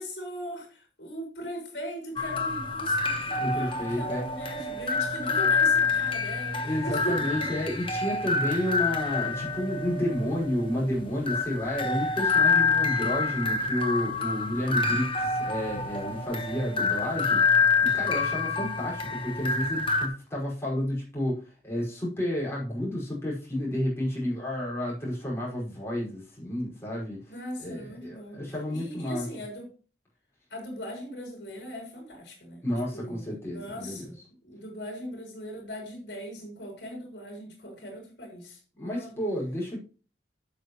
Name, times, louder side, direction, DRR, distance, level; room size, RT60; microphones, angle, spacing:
voice 1, 0.0-7.5 14.7-14.8 27.3-28.4 28.7-29.7 30.5-32.6 32.9-34.1 34.4-39.1, equal, 65° left, 0 dB, 4.2 m, -39 dB
sound 1, 2.2-20.1, left 4 dB, 30° left, 1.3 m, -27 dB
voice 2, 3.4-4.2 5.2-5.5 6.6-17.4 17.8-27.3 27.6-29.3 32.6-34.1 38.8-39.8, left 1 dB, 15° left, -5 dB, 5.5 m, -31 dB
12.0 x 6.6 x 3.2 m, 0.36 s
head